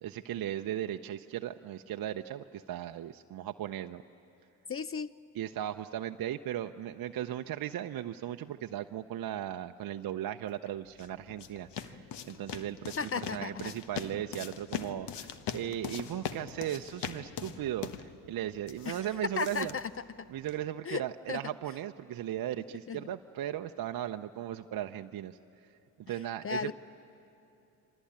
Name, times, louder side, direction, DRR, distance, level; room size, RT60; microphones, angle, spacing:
voice 1, 0.0-4.0 5.3-19.8 20.3-25.7 26.0-26.7, right 11 dB, 45° right, 6 dB, 0.7 m, -37 dB
voice 2, 4.7-5.1 13.0-13.7 18.9-19.1 19.4-19.9 20.9-21.0 21.3-21.4 22.9-23.0 26.4-26.7, left 5 dB, 30° left, 17 dB, 0.6 m, -34 dB
sound 1, 10.7-20.7, left 8 dB, 60° left, 1.3 m, -42 dB
27.0 x 25.0 x 8.7 m, 2.9 s
hypercardioid pair, 55°, 48 cm